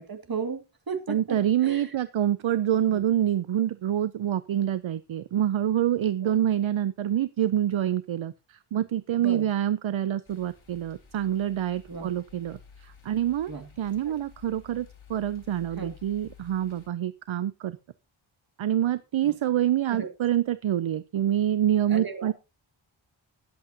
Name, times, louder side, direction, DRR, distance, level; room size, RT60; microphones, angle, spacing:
voice 1, 0.0-1.4 1.6-1.9 2.9-3.0 6.2-6.4 9.2-9.5 11.9-12.1 13.5-13.7 14.1-14.2 15.8-15.9 19.2-19.3 19.9-20.1 21.9-22.3, right 5 dB, 45° right, 6 dB, 2.1 m, -35 dB
voice 2, 1.1-13.5 13.8-17.8 18.6-22.3, right 11 dB, 70° right, 14 dB, 0.7 m, -26 dB
sound 1, 10.2-16.9, left 7 dB, 70° left, 5.0 m, -53 dB
20.5 x 8.0 x 2.8 m, 0.27 s
wide cardioid pair, 125°, 49 cm